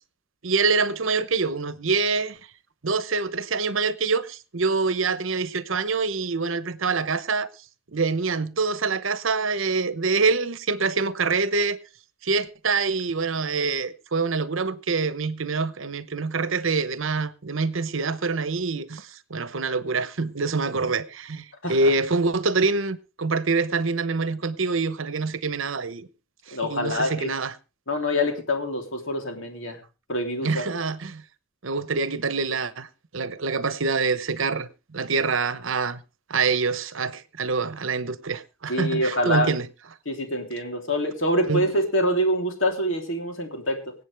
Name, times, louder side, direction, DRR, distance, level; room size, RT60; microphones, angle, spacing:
voice 1, 0.4-2.4 2.8-7.5 7.9-11.8 12.2-26.1 26.5-27.5 30.4-31.2 31.6-32.9 33.1-36.0 36.3-39.7 41.4-41.7, right 4 dB, 70° right, 0.9 m, -25 dB
voice 2, 26.5-27.3 27.9-29.8 30.1-30.6 38.7-39.5 40.0-43.8, equal, 65° left, 3.3 m, -25 dB
25.0 x 8.3 x 3.4 m
head